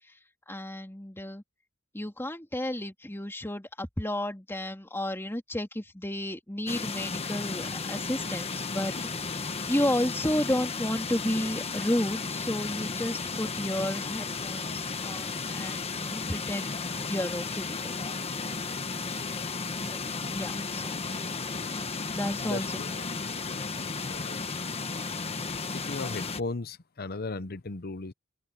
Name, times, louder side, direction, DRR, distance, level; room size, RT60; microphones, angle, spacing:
voice 1, 0.5-1.4 1.9-17.9 19.7-20.0 20.3-21.0 22.1-23.0, left 1 dB, 10° left, 2.9 m, -32 dB
sound 1, 6.7-26.4, left 4 dB, 30° left, 1.2 m, -34 dB
voice 2, 22.4-24.4 25.7-28.1, left 3 dB, 50° left, 0.9 m, -37 dB
open air
head